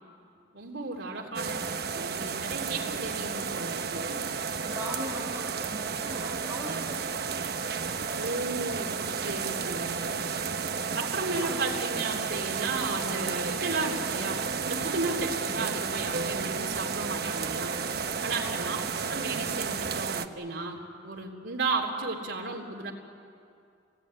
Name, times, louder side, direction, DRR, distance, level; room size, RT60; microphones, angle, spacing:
voice 1, 0.5-1.6 1.9-4.2 8.1-10.2 10.9-17.7 18.2-18.8 19.1-22.9, right 3 dB, 85° right, -1 dB, 3.3 m, -34 dB
sound 1, 1.4-20.3, right 5 dB, 55° right, 0.9 m, -32 dB
voice 2, 4.6-7.4 11.4-11.6 18.4-18.7, equal, 10° right, -1 dB, 4.0 m, -40 dB
28.0 x 19.5 x 9.6 m, 2.5 s
head